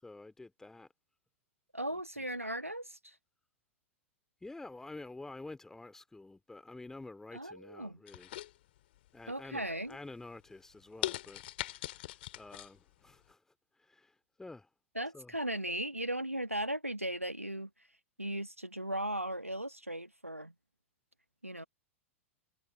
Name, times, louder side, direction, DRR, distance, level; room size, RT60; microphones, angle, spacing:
voice 1, 0.0-0.9 2.2-2.3 4.4-8.4 9.1-11.4 11.7-13.4 13.8-14.1 14.4-14.7 15.1-15.3, left 2 dB, 5° left, 2.9 m, -49 dB
voice 2, 1.7-3.2 7.3-8.0 9.3-10.0 14.9-17.7 18.2-20.5 21.4-21.6, right 1 dB, 90° right, 1.5 m, -37 dB
sound 1, 8.1-9.1 9.5-9.9 10.4-10.5 11.0-12.7 13.1-13.2, left 15 dB, 50° left, 2.7 m, -40 dB
figure-of-eight pair, 100°, 7 cm